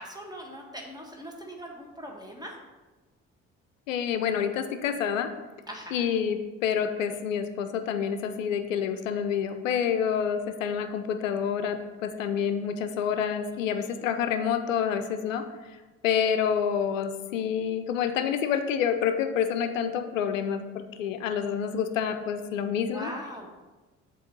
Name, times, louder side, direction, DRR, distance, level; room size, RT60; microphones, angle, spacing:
voice 1, 0.0-2.6 5.7-6.0 13.7-13.8 22.9-23.7, equal, 10° right, 0 dB, 1.5 m, -41 dB
voice 2, 3.9-5.3 5.9-15.5 16.0-23.1, left 8 dB, 90° left, 9 dB, 0.5 m, -28 dB
7.8 x 3.0 x 6.1 m, 1.2 s
hypercardioid pair, 45°, 38 cm